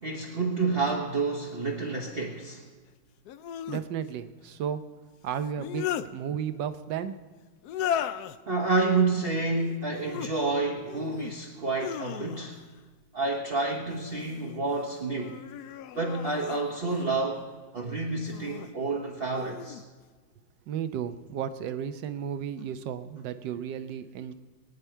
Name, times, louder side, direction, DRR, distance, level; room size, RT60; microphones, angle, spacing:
voice 1, 0.0-2.6 7.9-8.0 8.4-12.6 13.1-15.4 15.9-17.5 17.7-19.8, right 3 dB, 35° right, -1 dB, 1.3 m, -29 dB
sound 1, 0.9-1.0 3.2-3.9 5.4-6.1 7.6-8.4 9.8-10.3 10.8-11.3 11.7-12.6 13.9-14.5 15.1-17.1 18.2-18.7 19.3-19.8, left 9 dB, 70° left, 1.0 m, -36 dB
voice 2, 3.7-4.8 5.2-7.2 20.7-24.3, right 8 dB, 75° right, 10 dB, 1.4 m, -33 dB
23.5 x 9.3 x 4.5 m, 1.4 s
omnidirectional pair, 2.0 m